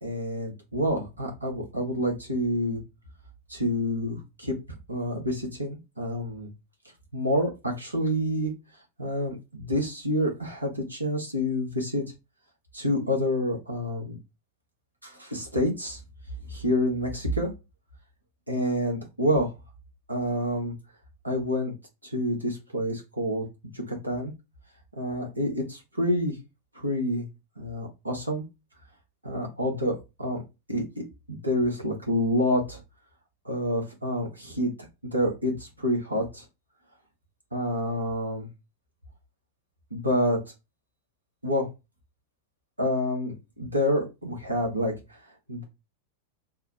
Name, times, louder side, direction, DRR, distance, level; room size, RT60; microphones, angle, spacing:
voice 1, 0.0-2.8 3.5-4.5 4.9-6.5 7.1-8.5 9.0-12.0 12.7-14.2 15.0-16.0 16.5-17.5 18.5-19.5 20.1-20.7 21.2-21.7 22.0-23.4 23.7-24.3 25.0-26.4 26.7-27.3 27.6-28.4 29.2-30.4 30.7-32.8 33.4-34.7 35.1-36.4 37.5-38.5 39.9-40.4 41.4-41.7 42.8-45.2 45.5-45.6, equal, 85° right, 0 dB, 1.2 m, -28 dB
3.6 x 2.3 x 4.5 m, 0.25 s
figure-of-eight pair, 90°, 0 cm